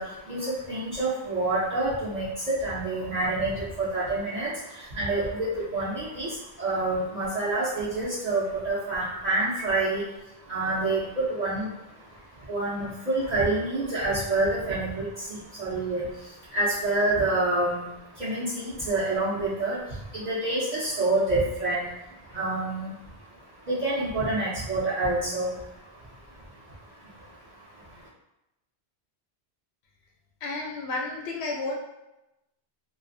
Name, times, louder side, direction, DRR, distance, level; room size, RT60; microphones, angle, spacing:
voice 1, 0.0-28.1, right 2 dB, 50° right, -9 dB, 0.6 m, -28 dB
voice 2, 30.4-31.7, left 3 dB, 80° left, 0 dB, 0.8 m, -31 dB
2.4 x 2.3 x 2.5 m, 0.92 s
omnidirectional pair, 1.1 m